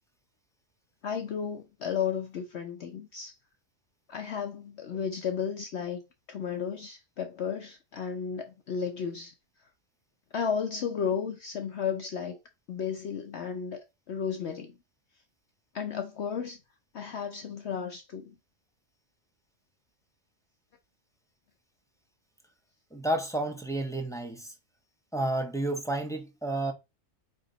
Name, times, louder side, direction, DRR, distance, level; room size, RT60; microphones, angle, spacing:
voice 1, 1.0-3.3 4.1-6.0 6.3-9.3 10.3-12.4 12.7-14.7 15.7-16.6 16.9-18.3, left 7 dB, 60° left, 0.9 m, -33 dB
voice 2, 22.9-24.5 25.1-26.7, right 1 dB, 5° left, 0.9 m, -31 dB
8.5 x 3.0 x 3.9 m
omnidirectional pair, 1.4 m